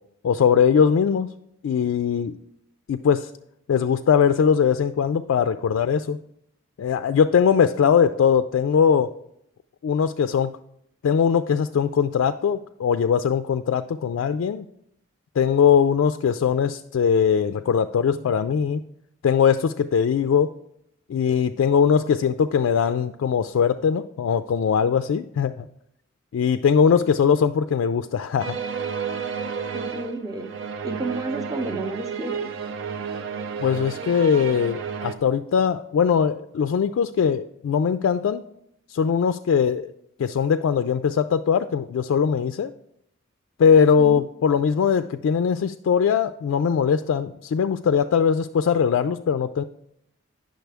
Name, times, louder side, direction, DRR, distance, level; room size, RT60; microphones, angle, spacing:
voice 1, 0.2-1.3 1.6-2.4 2.9-3.3 3.7-6.2 6.8-9.1 9.8-10.5 11.0-14.7 15.4-18.8 19.2-20.5 21.1-25.7 26.3-28.6 33.6-38.4 38.9-39.9 40.2-42.7 43.6-49.6, left 7 dB, 80° left, 9 dB, 0.3 m, -21 dB
sound 1, 28.4-35.1, right 6 dB, 65° right, 0.5 m, -31 dB
voice 2, 29.7-30.5 30.8-32.5 44.0-44.2, right 2 dB, 15° right, 6 dB, 0.5 m, -31 dB
9.2 x 6.4 x 3.4 m, 0.75 s
head